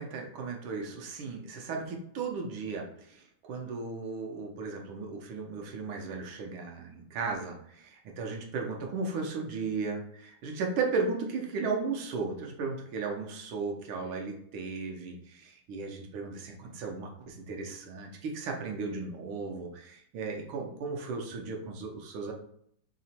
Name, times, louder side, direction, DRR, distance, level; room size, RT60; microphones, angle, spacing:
voice 1, 0.0-22.3, right 4 dB, 90° right, 1 dB, 1.7 m, -35 dB
3.9 x 2.9 x 4.3 m, 0.69 s
omnidirectional pair, 2.3 m